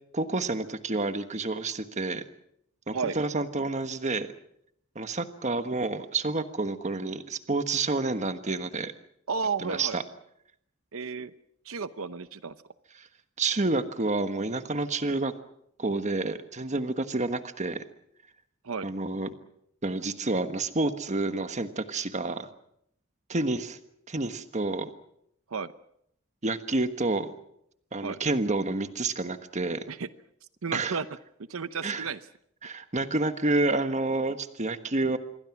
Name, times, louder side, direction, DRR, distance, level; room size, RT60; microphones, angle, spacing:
voice 1, 0.1-2.2 2.9-4.3 4.9-8.9 9.6-10.0 13.0-13.1 13.4-15.3 15.8-17.8 18.8-19.3 19.8-22.5 23.3-23.8 24.1-24.9 26.4-27.3 27.9-29.8 30.7-31.0 31.8-32.1 32.6-35.2, right 2 dB, 35° right, 9 dB, 1.4 m, -29 dB
voice 2, 9.3-10.0 10.9-11.3 11.6-12.5 18.6-18.9 25.5-25.7 28.0-28.2 29.9-30.1 30.6-31.1 31.5-32.2, right 5 dB, 85° right, 13 dB, 0.8 m, -32 dB
27.0 x 22.5 x 6.1 m, 0.75 s
head